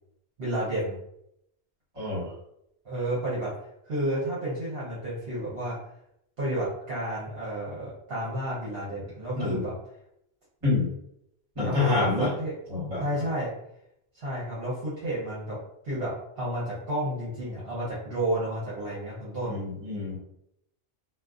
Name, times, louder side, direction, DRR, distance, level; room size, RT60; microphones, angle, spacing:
voice 1, 0.4-1.0 2.8-3.5 3.8-5.8 6.4-9.7 11.6-12.6 13.0-13.5 14.1-15.6 15.8-19.6, right 1 dB, 65° right, -8 dB, 1.0 m, -31 dB
voice 2, 1.9-2.3 9.3-9.6 10.6-10.9 11.5-12.3 12.7-13.0 19.4-20.2, left 3 dB, 30° right, -7 dB, 1.5 m, -27 dB
2.5 x 2.3 x 2.4 m, 0.76 s
omnidirectional pair, 1.1 m